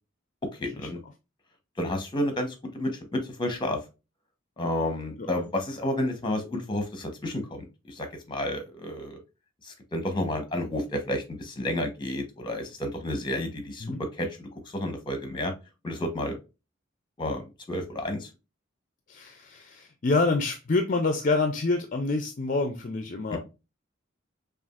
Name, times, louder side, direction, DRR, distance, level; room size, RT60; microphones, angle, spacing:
voice 1, 0.6-1.0 1.8-3.8 4.6-9.2 9.6-13.9 14.2-15.5 15.8-16.4 17.2-18.3, left 1 dB, 25° left, 1.0 m, -31 dB
voice 2, 19.1-23.4, left 3 dB, 45° left, 0.5 m, -27 dB
6.0 x 2.4 x 2.4 m
head